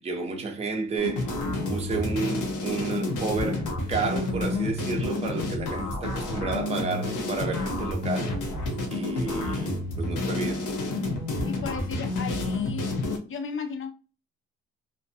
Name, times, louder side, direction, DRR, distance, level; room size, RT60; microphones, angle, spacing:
voice 1, 0.0-1.3 1.7-8.4 8.9-10.7, right 4 dB, 20° right, 0.6 m, -31 dB
sound 1, 1.0-13.2, left 2 dB, 90° left, 0.8 m, -29 dB
voice 2, 11.4-13.0 13.2-13.9, left 6 dB, 45° left, 0.6 m, -35 dB
2.5 x 2.1 x 2.6 m
cardioid pair, 90°, 30 cm